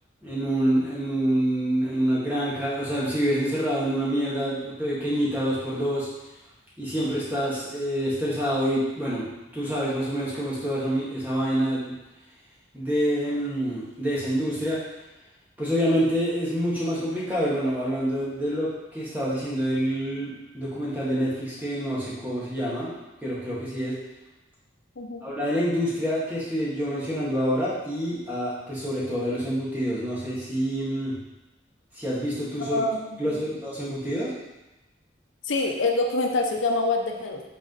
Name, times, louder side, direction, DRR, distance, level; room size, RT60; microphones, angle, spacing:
voice 1, 0.2-6.1 6.8-9.3 9.5-11.9 12.7-14.8 15.6-22.9 23.2-24.0 25.2-31.1 31.9-32.8 33.2-34.3, equal, 10° right, -8 dB, 1.9 m, -27 dB
voice 2, 32.6-33.2 35.4-37.4, left 2 dB, 80° left, 2 dB, 0.7 m, -25 dB
8.5 x 3.8 x 3.9 m, 1.0 s
head